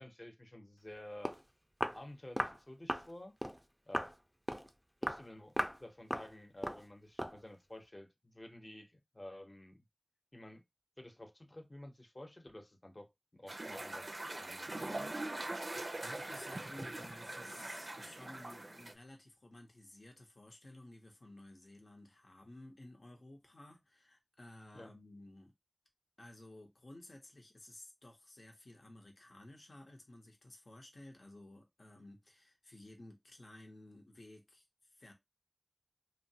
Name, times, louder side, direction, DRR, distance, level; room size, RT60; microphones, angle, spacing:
voice 1, 0.0-1.4 1.9-3.3 3.9-4.1 5.0-5.5 5.8-9.8 10.3-10.6 11.0-15.3 24.7-24.9, left 1 dB, 40° left, 0.7 m, -51 dB
Walk footsteps, 0.9-1.0 1.2-1.4 1.8-2.0 2.4-2.6 2.9-3.1 3.4-3.6 3.9-4.1 4.5-4.7 5.0-5.2 5.6-5.8 6.1-6.3 6.6-6.8 7.2-7.4, equal, ahead, 0.4 m, -37 dB
sound 1, 13.5-18.9, right 2 dB, 65° right, 0.4 m, -42 dB
voice 2, 15.8-25.5 26.2-34.7 34.9-35.1, left 1 dB, 85° left, 0.7 m, -55 dB
3.0 x 2.1 x 2.6 m
wide cardioid pair, 50°, 0 cm